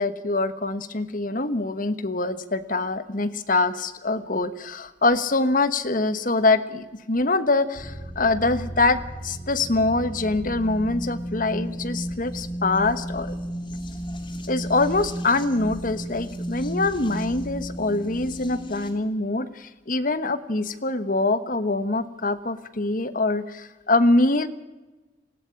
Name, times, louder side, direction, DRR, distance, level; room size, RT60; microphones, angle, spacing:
voice 1, 0.0-13.3 14.5-24.5, left 2 dB, 45° left, 12 dB, 1.3 m, -24 dB
sound 1, 7.8-18.9, equal, 25° left, 3.0 m, -34 dB
19.0 x 16.0 x 9.9 m, 1.2 s
head